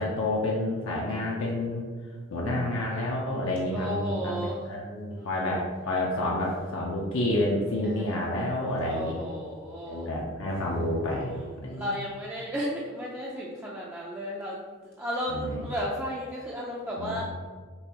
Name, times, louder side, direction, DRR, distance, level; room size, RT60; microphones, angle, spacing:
voice 1, 0.0-1.9 2.3-9.2 9.9-11.9 15.3-15.6 17.0-17.3, left 1 dB, 70° left, -3 dB, 0.6 m, -29 dB
voice 2, 3.7-4.6 5.1-5.5 7.8-8.3 8.8-10.1 11.3-14.6 15.0-17.3, equal, 10° right, -5 dB, 0.4 m, -34 dB
5.4 x 2.9 x 2.9 m, 1.6 s
head